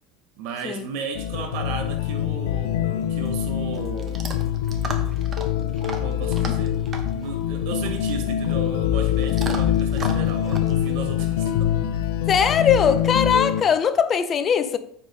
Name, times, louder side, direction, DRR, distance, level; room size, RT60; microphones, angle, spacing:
voice 1, 0.4-4.2 6.0-6.9 7.1-11.8, right 5 dB, 60° right, 1.0 m, -34 dB
Sine Grains, 1.1-13.6, left 11 dB, 85° left, 0.5 m, -24 dB
Chewing mastication / Dog, 3.0-12.1, right 4 dB, 25° right, 0.9 m, -39 dB
sound 1, 3.3-3.9 4.2-4.6 4.9-5.1 8.1-8.2, left 2 dB, 10° left, 1.5 m, -49 dB
voice 2, 12.3-14.8, left 7 dB, 25° left, 0.5 m, -20 dB
8.8 x 4.9 x 3.9 m
supercardioid pair, 155°, 0 cm